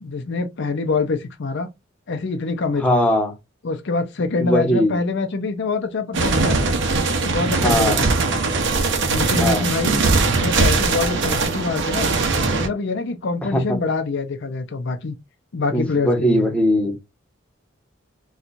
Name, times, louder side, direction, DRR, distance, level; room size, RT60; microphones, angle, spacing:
voice 1, 0.0-1.7 2.1-3.1 3.6-6.7 7.2-8.1 9.0-10.0 10.4-12.1 12.5-15.2 15.5-16.5, left 3 dB, 65° left, 0.6 m, -25 dB
voice 2, 2.8-3.3 4.4-5.0 7.5-8.0 9.4-9.7 13.5-13.8 15.7-17.0, equal, 5° left, 1.0 m, -20 dB
sound 1, 6.1-12.7, right 3 dB, 65° right, 0.8 m, -20 dB
4.3 x 2.4 x 2.6 m
head